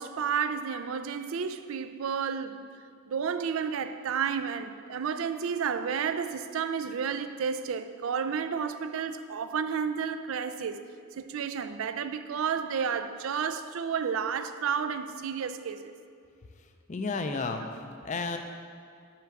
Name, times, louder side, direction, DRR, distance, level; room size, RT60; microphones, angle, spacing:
voice 1, 0.0-2.6 3.1-10.8 11.2-15.9, right 6 dB, 75° right, 0.4 m, -31 dB
voice 2, 16.9-18.4, left 3 dB, 35° left, 0.4 m, -32 dB
5.9 x 5.7 x 5.9 m
head